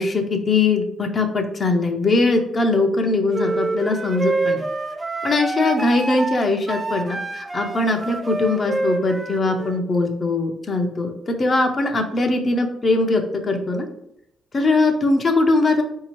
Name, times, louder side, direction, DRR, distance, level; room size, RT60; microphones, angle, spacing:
voice 1, 0.0-4.6 5.2-13.9 14.5-15.8, left 2 dB, 35° left, 3 dB, 0.6 m, -21 dB
sound 1, 3.3-9.8, right 2 dB, 15° right, 0.4 m, -27 dB
4.0 x 2.7 x 3.0 m, 0.77 s
cardioid pair, 90°, 0 cm